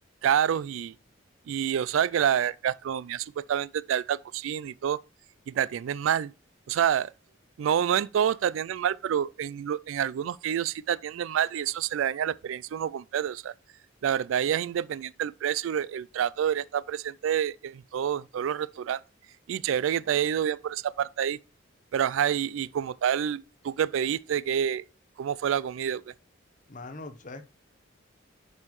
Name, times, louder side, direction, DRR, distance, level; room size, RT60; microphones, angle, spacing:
voice 1, 0.2-0.9 1.5-5.0 5.5-6.3 6.7-7.1 7.6-13.5 14.0-19.0 19.5-21.4 21.9-24.8 25.2-26.0, right 9 dB, 80° right, 0.3 m, -28 dB
voice 2, 26.7-27.4, left 2 dB, 40° left, 0.8 m, -41 dB
9.7 x 5.4 x 3.1 m
head